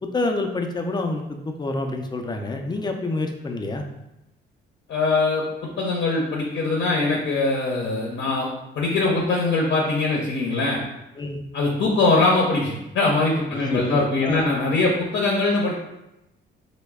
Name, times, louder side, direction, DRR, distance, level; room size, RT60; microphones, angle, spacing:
voice 1, 0.0-3.9 11.2-11.4 13.5-14.5, left 2 dB, 20° left, 4 dB, 0.4 m, -27 dB
voice 2, 4.9-5.4 5.8-8.5 8.7-10.8 11.5-15.7, left 3 dB, 65° left, -2 dB, 0.6 m, -22 dB
3.0 x 2.1 x 3.5 m, 0.91 s
cardioid pair, 90°, 20 cm